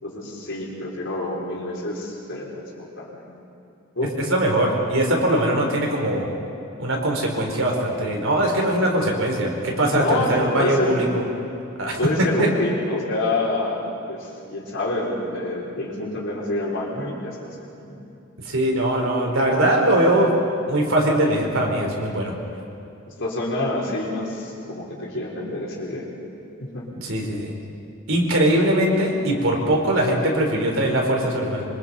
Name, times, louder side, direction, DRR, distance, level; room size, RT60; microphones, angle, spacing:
voice 1, 0.0-3.2 4.0-4.2 9.9-11.0 12.0-13.8 14.1-18.0 23.2-26.0 26.6-26.9, left 2 dB, 60° left, -3 dB, 5.2 m, -27 dB
voice 2, 4.3-6.2 6.8-11.3 11.8-12.5 18.4-20.3 20.7-22.3 27.0-27.5 28.1-31.6, right 1 dB, 65° right, 0 dB, 4.4 m, -21 dB
26.0 x 24.5 x 5.6 m, 2.7 s
head